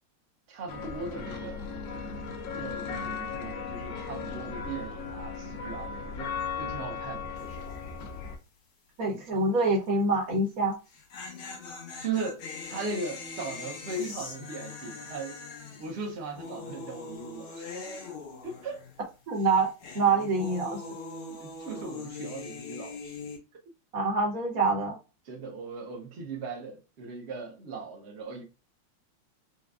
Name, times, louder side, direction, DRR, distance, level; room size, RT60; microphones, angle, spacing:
voice 1, 0.5-1.6 2.5-7.8 12.0-15.4 15.8-17.7 18.4-18.8 21.3-23.2 25.2-28.4, right 3 dB, 70° right, 0.6 m, -38 dB
sound 1, 0.7-8.4, left 5 dB, 75° left, 1.4 m, -37 dB
sound 2, 7.4-7.7 8.0-8.1 10.7-19.1 19.3-23.4, left 3 dB, 90° left, 2.1 m, -42 dB
voice 2, 9.0-10.8 19.3-19.7 19.9-20.8 23.9-25.0, right 3 dB, 50° right, 1.4 m, -25 dB
5.0 x 2.2 x 2.3 m
omnidirectional pair, 2.3 m